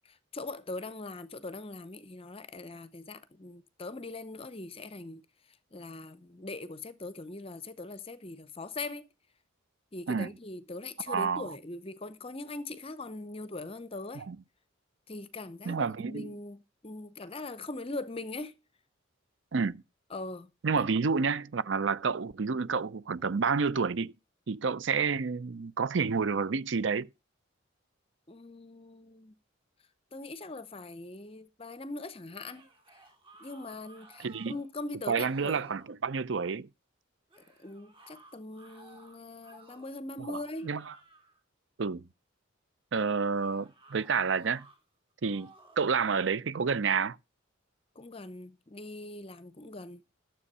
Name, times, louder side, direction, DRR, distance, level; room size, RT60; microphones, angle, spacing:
voice 1, 0.3-5.2 5.7-9.1 9.9-14.3 15.1-18.5 20.1-20.5 20.7-20.8 28.3-29.3 30.1-32.7 33.4-35.7 37.4-40.7 48.0-50.0, left 2 dB, 30° left, 0.7 m, -41 dB
voice 2, 11.1-11.5 14.2-14.4 15.7-16.3 19.5-19.8 20.6-24.1 24.5-27.1 34.2-34.6 35.1-36.7 40.2-40.9 41.8-42.0 42.9-44.6 45.2-45.5 45.8-47.2, right 5 dB, 65° right, 0.6 m, -29 dB
sound 1, 32.3-34.7 35.0-35.9 37.3-40.0 40.4-41.4 43.3-44.8 45.2-46.0, right 2 dB, 25° right, 3.1 m, -57 dB
12.5 x 7.4 x 5.4 m
head